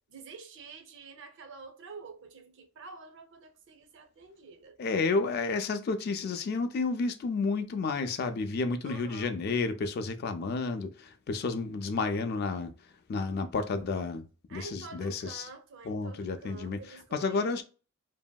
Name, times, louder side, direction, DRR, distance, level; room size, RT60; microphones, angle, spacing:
voice 1, 0.1-4.8 8.8-9.3 14.5-17.6, right 4 dB, 60° right, 0.5 m, -48 dB
voice 2, 4.8-12.7 13.1-14.2 14.5-15.5 15.9-16.8 17.1-17.6, left 4 dB, 50° left, 0.3 m, -31 dB
2.8 x 2.6 x 2.2 m
head